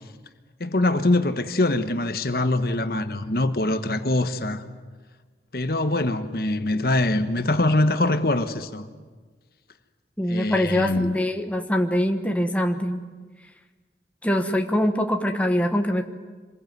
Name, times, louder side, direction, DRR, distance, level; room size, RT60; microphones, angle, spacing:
voice 1, 0.6-4.6 5.5-8.9 10.3-11.2, left 2 dB, 60° left, 1.3 m, -23 dB
voice 2, 10.2-13.0 14.2-16.0, left 1 dB, 10° left, 1.3 m, -23 dB
26.5 x 21.0 x 9.4 m
head